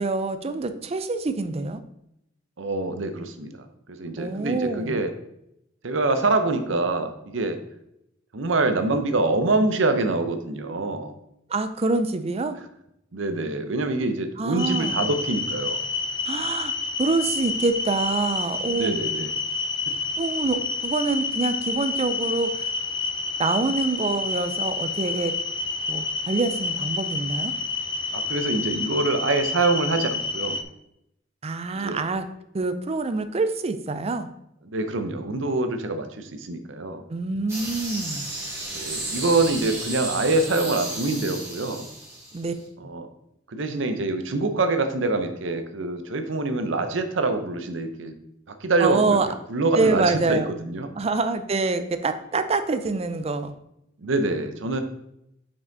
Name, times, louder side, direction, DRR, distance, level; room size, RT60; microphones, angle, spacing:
voice 1, 0.0-1.8 4.2-5.0 11.5-12.6 14.4-15.0 16.3-18.9 20.2-22.7 23.4-25.3 25.9-27.5 31.4-32.3 32.5-34.3 37.1-38.3 42.3-42.5 48.8-49.3 49.8-50.5 51.0-53.5, right 3 dB, 35° right, 10 dB, 0.5 m, -26 dB
voice 2, 2.6-3.5 3.9-5.1 5.8-7.6 8.3-11.1 13.1-15.8 18.7-19.3 28.1-30.6 31.7-32.0 34.7-37.0 38.7-41.9 42.8-43.1 43.5-48.1 48.5-49.2 49.5-50.9 54.0-54.8, right 2 dB, 85° right, 8 dB, 0.8 m, -25 dB
sound 1, 14.6-30.6, left 4 dB, 25° left, 0.4 m, -29 dB
sound 2, 37.5-42.6, right 1 dB, 15° right, 2.2 m, -33 dB
5.6 x 5.2 x 4.0 m, 0.79 s
head